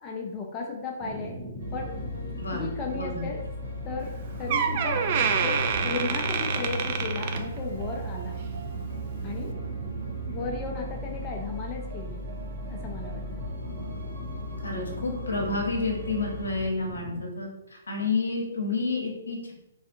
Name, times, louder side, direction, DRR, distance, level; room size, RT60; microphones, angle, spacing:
voice 1, 0.0-1.4 1.7-2.0 2.5-3.4 3.8-5.1 5.4-8.4 9.2-9.6 10.3-12.2 12.7-13.4, left 4 dB, 25° left, 0 dB, 0.4 m, -35 dB
sound 1, 1.0-17.2, equal, 10° right, 0.8 m, -40 dB
sound 2, 1.6-16.6, right 1 dB, 65° right, 0.7 m, -37 dB
voice 2, 2.9-3.2 14.6-19.5, left 3 dB, 80° left, 0 dB, 0.7 m, -30 dB
Door, 4.0-4.1 4.5-8.0 8.3-8.6 9.3-9.4, right 6 dB, 45° right, 0.3 m, -27 dB
2.5 x 2.4 x 2.5 m, 0.90 s
figure-of-eight pair, 130°, 0 cm